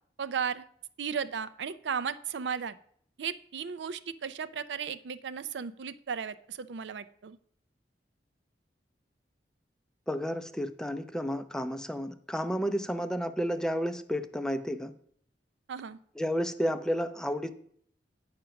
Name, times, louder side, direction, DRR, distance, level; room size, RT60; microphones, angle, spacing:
voice 1, 0.2-0.7 1.0-2.8 3.2-7.4 15.7-16.0, right 7 dB, 85° right, 14 dB, 0.4 m, -35 dB
voice 2, 10.1-14.9 16.2-17.5, equal, 5° left, 10 dB, 0.4 m, -31 dB
9.0 x 5.1 x 5.7 m, 0.63 s
head